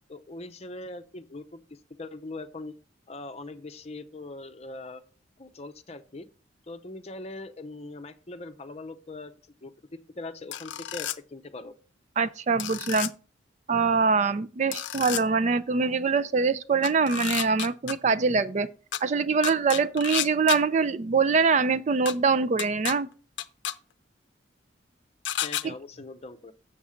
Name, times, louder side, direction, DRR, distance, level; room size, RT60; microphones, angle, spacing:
voice 1, 0.1-2.7 3.1-5.0 5.4-6.3 6.7-9.3 9.6-9.7 10.2-11.7 25.4-26.5, left 2 dB, 35° left, 0.7 m, -41 dB
sound 1, 10.5-11.2 12.6-13.1 14.7-15.2 16.8-17.9 18.9-19.0 19.4-20.6 22.1-22.2 22.6-22.9 23.4-23.7 25.2-25.6, left 11 dB, 80° left, 0.5 m, -31 dB
voice 2, 12.2-13.1 13.7-18.7 19.0-23.1 25.6-25.7, right 4 dB, 40° right, 0.4 m, -24 dB
7.3 x 7.0 x 5.0 m
head